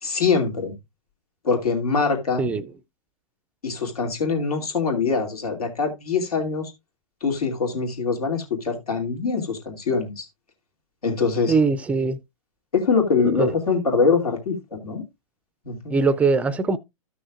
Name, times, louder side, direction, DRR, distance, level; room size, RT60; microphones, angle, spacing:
voice 1, 0.0-0.7 1.4-2.5 3.6-6.7 7.2-10.3 11.0-11.5 12.7-15.0 15.6-16.0, left 5 dB, 80° left, 2.7 m, -23 dB
voice 2, 11.5-12.2 13.2-13.5 15.9-16.8, right 4 dB, 5° right, 0.4 m, -21 dB
14.0 x 6.2 x 2.4 m
hypercardioid pair, 125°, 19 cm